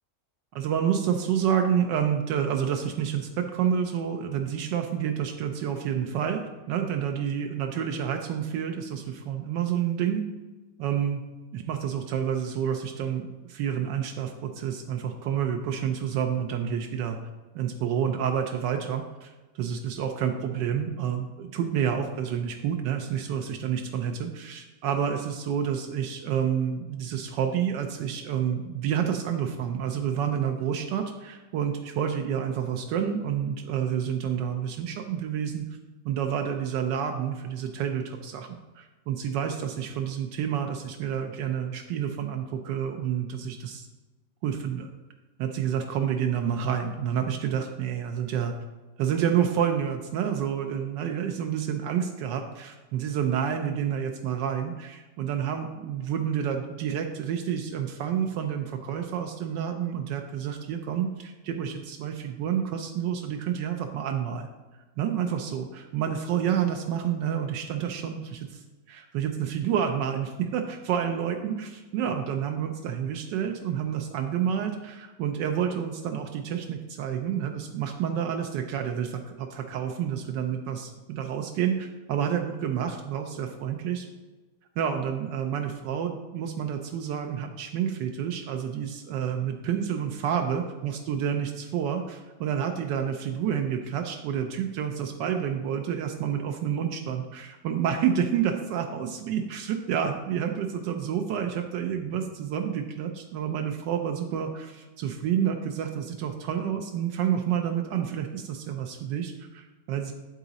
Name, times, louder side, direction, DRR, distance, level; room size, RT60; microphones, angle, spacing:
voice 1, 0.5-10.2 10.8-11.2 11.5-17.2 17.5-35.7 36.0-43.9 44.4-44.9 45.4-48.5 49.0-64.5 65.0-84.1 84.8-110.1, right 8 dB, 85° right, 4 dB, 1.2 m, -29 dB
11.0 x 3.9 x 4.0 m, 1.2 s
omnidirectional pair, 1.9 m